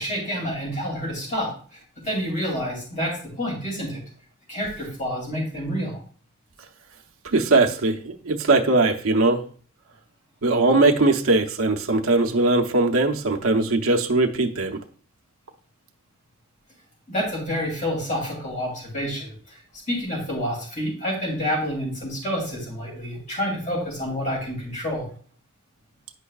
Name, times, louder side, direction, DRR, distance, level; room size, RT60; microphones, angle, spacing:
voice 1, 0.0-4.0 4.5-6.0 17.1-19.6 19.9-25.1, equal, 35° left, -2 dB, 2.6 m, -28 dB
voice 2, 7.2-9.4 10.4-14.8, right 2 dB, 75° right, 3 dB, 0.7 m, -20 dB
9.6 x 5.3 x 2.3 m, 0.43 s
head